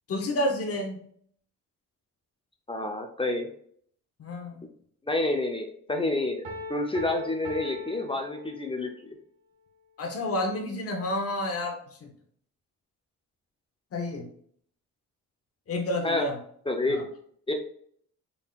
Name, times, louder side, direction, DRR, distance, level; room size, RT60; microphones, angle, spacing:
voice 1, 0.1-1.0 4.2-4.6 10.0-11.8 12.0-12.1 13.9-14.3 15.7-16.4 16.9-17.0, left 1 dB, 45° left, 2 dB, 0.9 m, -30 dB
voice 2, 2.7-3.5 5.0-9.1 16.0-16.3 16.7-17.0 17.5-17.6, left 2 dB, 15° left, 3 dB, 0.6 m, -29 dB
Piano, 6.4-9.0, left 2 dB, 85° right, 1.0 m, -40 dB
3.8 x 3.7 x 2.4 m, 0.62 s
cardioid pair, 90°, 31 cm